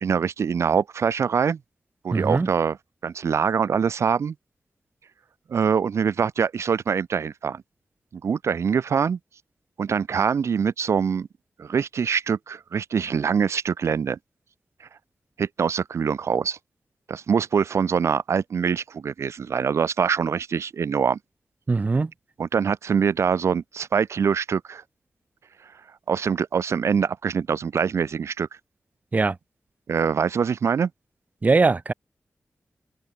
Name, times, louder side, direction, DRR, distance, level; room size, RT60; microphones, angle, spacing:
voice 1, 0.0-1.6 2.0-2.8 3.0-4.3 5.5-7.6 8.1-9.2 9.8-11.3 11.6-14.2 15.4-16.6 17.1-21.2 22.4-24.8 26.1-28.5 29.9-30.9, right 6 dB, 85° right, 1.8 m, -24 dB
voice 2, 2.1-2.5 21.7-22.1 29.1-29.4 31.4-31.9, right 3 dB, 35° right, 0.9 m, -21 dB
open air
wide cardioid pair, 130°, 5 cm